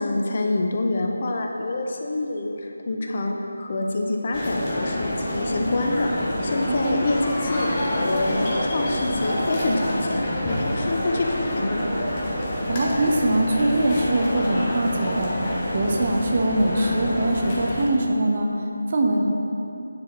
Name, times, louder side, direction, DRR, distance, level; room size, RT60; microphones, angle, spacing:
voice 1, 0.0-11.9, left 2 dB, 40° left, 2 dB, 0.6 m, -26 dB
sound 1, 4.3-17.9, left 1 dB, 25° left, 1.3 m, -27 dB
voice 2, 12.7-15.3 15.7-18.5 18.9-19.3, right 1 dB, 40° right, 1 dB, 0.9 m, -22 dB
9.5 x 4.7 x 4.5 m, 2.8 s
figure-of-eight pair, 160°, 0 cm